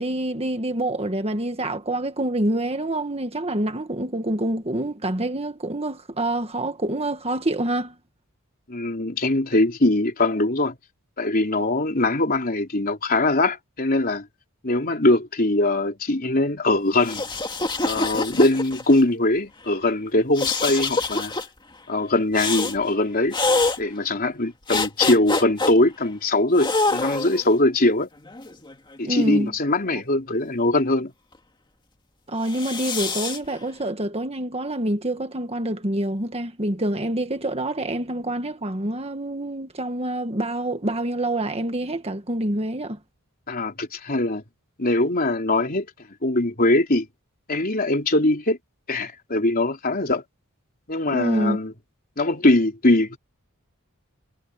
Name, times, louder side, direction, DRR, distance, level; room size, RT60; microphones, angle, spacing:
voice 1, 0.0-8.0 29.0-29.5 32.3-43.0 51.1-51.6, right 1 dB, 30° right, 1.6 m, -26 dB
voice 2, 8.7-10.8 11.2-14.3 14.6-17.2 17.8-21.3 21.9-23.4 23.8-28.1 29.0-31.1 43.5-44.4 44.8-45.9 46.2-47.1 47.5-48.6 48.9-50.2 50.9-51.7 52.2-53.2, left 2 dB, 40° left, 3.7 m, -21 dB
sound 1, 17.0-19.0 20.4-21.5 22.4-22.8 23.3-23.8 24.7-25.7 26.6-27.5 28.3-29.4 32.4-33.4, left 3 dB, 20° left, 2.1 m, -25 dB
head